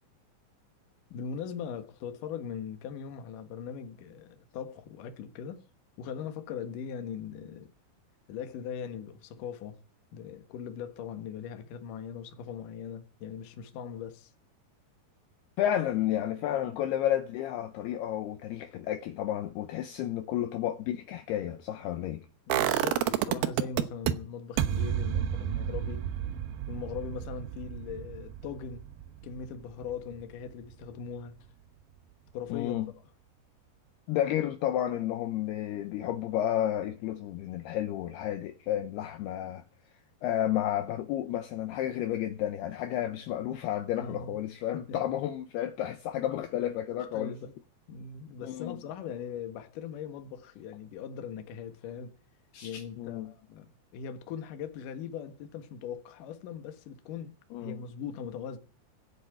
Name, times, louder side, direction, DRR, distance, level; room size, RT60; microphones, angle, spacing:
voice 1, 1.1-5.6 6.0-7.7 8.3-9.8 10.1-14.3 22.5-26.0 26.7-28.8 29.2-31.4 32.3-32.8 44.0-44.4 44.7-45.0 47.1-47.5 47.9-52.1 52.6-57.3 57.6-58.6, left 7 dB, 60° left, 2.5 m, -40 dB
voice 2, 15.6-22.3 32.5-32.9 34.1-39.6 40.2-47.4 48.4-48.8 52.5-53.3 57.5-57.8, left 11 dB, 75° left, 2.7 m, -31 dB
sound 1, 22.5-24.1 24.6-30.4 30.7-30.8, right 11 dB, 70° right, 2.5 m, -31 dB
16.5 x 7.4 x 9.0 m
omnidirectional pair, 5.2 m